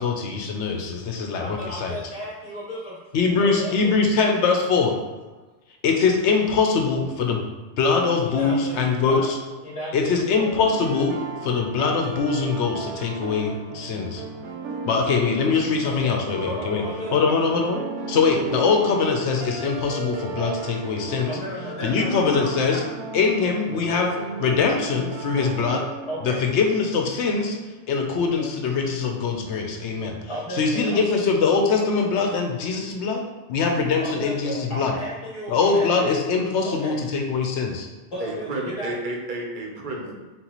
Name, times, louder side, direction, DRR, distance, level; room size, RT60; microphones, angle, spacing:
voice 1, 0.0-2.0 3.1-4.9 5.8-7.4 7.8-9.4 9.9-14.2 14.9-16.8 17.1-17.8 18.1-21.4 21.8-22.8 23.1-24.1 24.4-25.8 26.2-27.6 27.9-30.2 30.5-33.2 33.5-34.9 35.5-37.9, left 5 dB, 75° left, 3 dB, 0.9 m, -22 dB
voice 2, 1.4-3.0 3.4-3.9 4.4-4.5 8.2-9.3 9.6-10.1 15.8-17.3 17.6-17.8 21.3-22.9 25.1-25.2 26.1-26.4 28.4-28.5 29.5-31.0 34.0-36.1 36.6-37.0 38.1-38.9, equal, 25° left, -6 dB, 1.4 m, -34 dB
sound 1, 10.4-27.3, right 3 dB, 80° right, 1.0 m, -35 dB
voice 3, 38.2-40.1, right 2 dB, 50° right, -1 dB, 0.9 m, -31 dB
4.0 x 4.0 x 3.0 m, 1.2 s
omnidirectional pair, 1.2 m